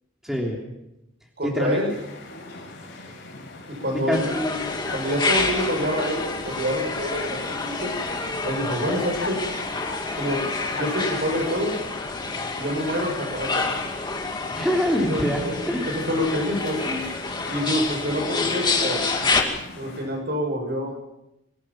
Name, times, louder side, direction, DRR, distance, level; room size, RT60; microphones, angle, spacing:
voice 1, 0.2-0.6 1.4-1.8 4.1-4.2 14.5-15.9, equal, ahead, -1 dB, 3.4 m, -24 dB
voice 2, 1.4-1.9 3.8-7.9 8.4-9.4 10.1-10.4 10.7-11.7 12.6-13.7 15.1-15.6 15.9-17.1 17.5-19.0 19.7-20.9, equal, 55° right, 1 dB, 7.7 m, -27 dB
sound 1, 1.9-20.1, left 2 dB, 60° left, 6.5 m, -42 dB
sound 2, 4.1-19.4, left 3 dB, 20° left, 2.4 m, -28 dB
sound 3, 4.5-11.8, left 3 dB, 85° left, 4.7 m, -40 dB
25.0 x 18.0 x 7.7 m, 0.90 s
head